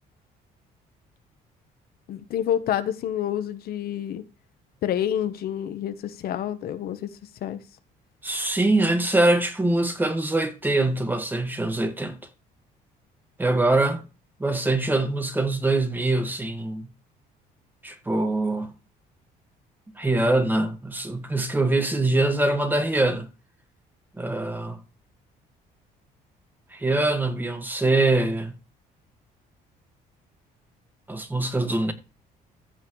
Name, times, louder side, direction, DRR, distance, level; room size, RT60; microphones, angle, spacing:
voice 1, 2.1-4.2 4.8-7.6, left 10 dB, 65° left, 1.0 m, -28 dB
voice 2, 8.2-12.2 13.4-14.0 14.4-16.9 17.8-18.7 20.0-23.3 24.2-24.8 26.7-28.6 31.1-31.9, right 2 dB, 10° right, 1.7 m, -23 dB
15.0 x 5.6 x 3.2 m
cardioid pair, 110°, 17 cm